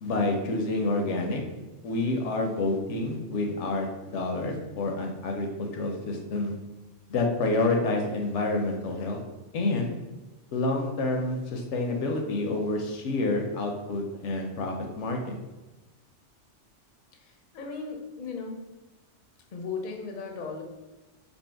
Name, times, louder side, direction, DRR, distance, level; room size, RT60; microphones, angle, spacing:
voice 1, 0.0-1.4 1.8-6.5 7.1-9.2 9.5-9.9 10.5-15.2, left 2 dB, 80° left, 2 dB, 0.9 m, -28 dB
voice 2, 17.1-18.6 19.5-20.6, left 4 dB, 50° left, 2 dB, 0.6 m, -37 dB
2.7 x 2.7 x 4.3 m, 1.1 s
omnidirectional pair, 1.2 m